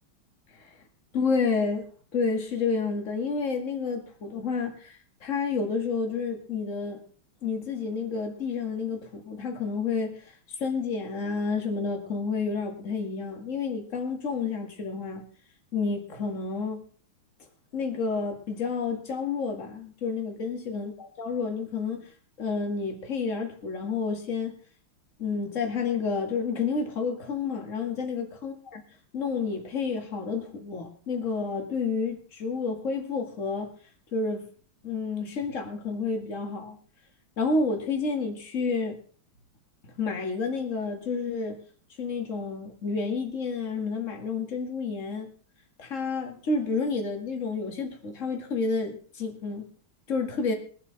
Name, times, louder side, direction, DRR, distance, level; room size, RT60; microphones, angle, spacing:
voice 1, 1.1-7.0 7.4-10.2 10.6-15.2 15.7-16.8 17.7-20.9 21.2-22.0 22.4-24.5 25.2-28.8 29.1-33.7 34.1-34.5 34.8-36.8 37.4-39.0 40.0-41.6 42.0-45.3 45.8-49.7 50.1-50.5, left 4 dB, 35° left, 3 dB, 2.4 m, -30 dB
22.5 x 8.3 x 4.0 m, 0.43 s
omnidirectional pair, 2.3 m